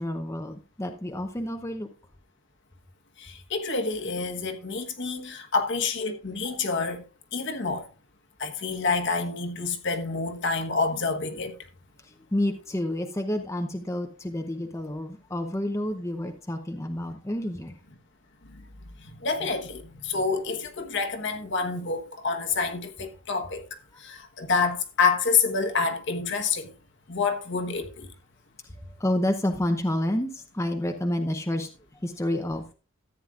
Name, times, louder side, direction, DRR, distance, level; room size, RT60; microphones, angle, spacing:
voice 1, 0.0-1.9 12.3-17.8 29.0-30.3 30.5-31.7 32.0-32.6, left 1 dB, 15° left, 0.7 m, -29 dB
voice 2, 3.2-7.0 7.3-7.9 8.4-11.5 18.5-18.6 19.0-23.6 24.0-26.7 27.1-28.1, left 4 dB, 55° left, 1.2 m, -28 dB
14.0 x 9.1 x 2.4 m
head